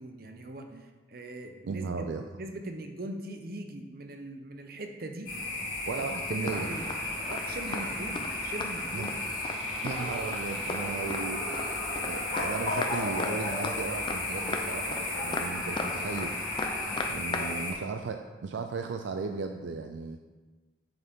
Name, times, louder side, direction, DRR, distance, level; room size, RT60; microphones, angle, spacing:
voice 1, 0.0-1.9 2.4-5.3 5.9-6.1 6.4-6.9 7.3-9.1 17.4-17.8, right 1 dB, 50° right, 5 dB, 0.7 m, -40 dB
voice 2, 1.7-2.2 5.9-6.7 8.9-9.1 9.8-11.7 12.0-16.4 16.7-20.2, right 4 dB, 70° right, 6 dB, 0.4 m, -36 dB
sound 1, 5.3-17.7, left 2 dB, 45° left, 2.5 m, -34 dB
sound 2, 6.5-6.6 6.9-7.0 7.3-7.4 7.7-7.9 8.2-8.3 8.6-9.2 9.4-9.6 9.9-10.0 10.3-10.4 10.7-10.8 11.1-12.1 12.4-12.5 12.8-12.9 13.2-13.8 14.1-14.2 14.5-14.6 14.9-15.0 15.3-15.9 16.2-16.3 16.6-17.5 17.7-17.8, left 3 dB, 25° left, 0.5 m, -35 dB
sound 3, 6.5-17.1, equal, 5° right, 1.2 m, -43 dB
7.8 x 6.6 x 3.6 m, 1.3 s
head